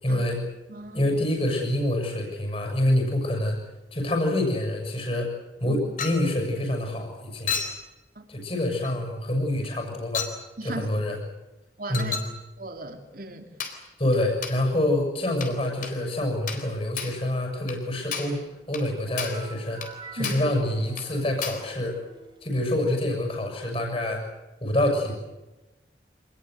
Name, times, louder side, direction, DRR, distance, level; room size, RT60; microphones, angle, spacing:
voice 1, 0.0-0.4 0.9-3.6 3.9-5.3 5.6-7.5 8.3-10.3 10.6-11.2 11.9-12.2 14.0-22.0 22.4-24.2 24.6-25.1, left 1 dB, 30° left, 3 dB, 6.9 m, -26 dB
voice 2, 0.7-1.1 5.7-5.8 8.1-8.2 10.6-10.9 11.8-12.2 12.6-13.5 20.2-20.4, right 1 dB, 50° right, 5 dB, 3.1 m, -36 dB
Chink clink, 6.0-6.3 7.5-7.8 8.8-9.0 10.1-10.4 11.9-12.4 13.6-13.8 14.4-14.6 15.4-15.6 15.8-16.0 16.5-16.7 17.0-17.2 17.7-17.8 18.1-18.4 18.7-18.9 19.2-19.5 19.8-19.9 20.2-20.5 21.0-21.1 21.4-21.7, left 6 dB, 45° left, 3.9 m, -32 dB
sound 1, 19.1-22.7, right 3 dB, 25° right, 4.1 m, -47 dB
26.5 x 20.5 x 8.1 m, 1.1 s
head